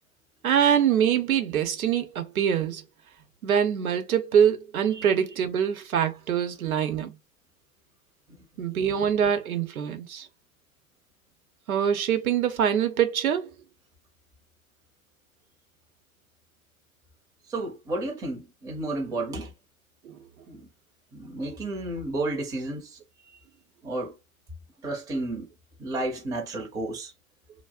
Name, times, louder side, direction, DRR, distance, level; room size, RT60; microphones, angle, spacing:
voice 1, 0.4-2.8 3.4-7.1 8.6-10.3 11.7-13.5, right 8 dB, 80° right, 0.8 m, -24 dB
voice 2, 8.4-8.7 17.5-19.5 20.5-20.7 21.1-23.0 23.8-24.1 24.8-25.5 25.8-27.1, right 2 dB, 10° right, 0.5 m, -32 dB
2.3 x 2.0 x 3.5 m
hypercardioid pair, 115°, 42 cm